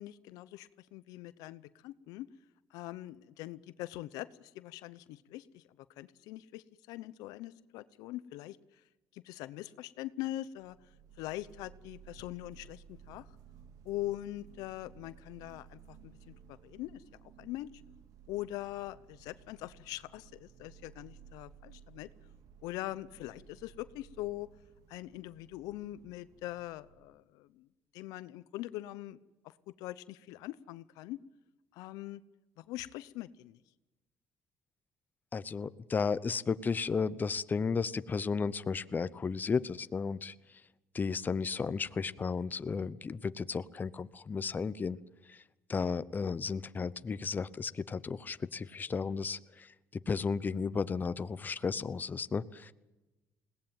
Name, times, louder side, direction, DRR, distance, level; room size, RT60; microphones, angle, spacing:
voice 1, 0.0-2.3 2.7-5.6 6.0-8.6 9.1-10.8 11.2-13.3 13.8-17.0 17.4-17.7 18.3-22.1 22.6-24.5 24.9-27.7 27.9-29.2 29.8-31.2 31.7-32.2 32.6-33.6, left 16 dB, 85° left, 16 dB, 0.8 m, -42 dB
sound 1, 10.6-27.2, right 8 dB, 75° right, 2.1 m, -57 dB
voice 2, 35.3-40.3 40.9-45.0 45.3-45.4 45.7-52.7, left 5 dB, 30° left, 15 dB, 0.9 m, -34 dB
21.0 x 18.0 x 9.0 m, 1.1 s
cardioid pair, 90°, 6 cm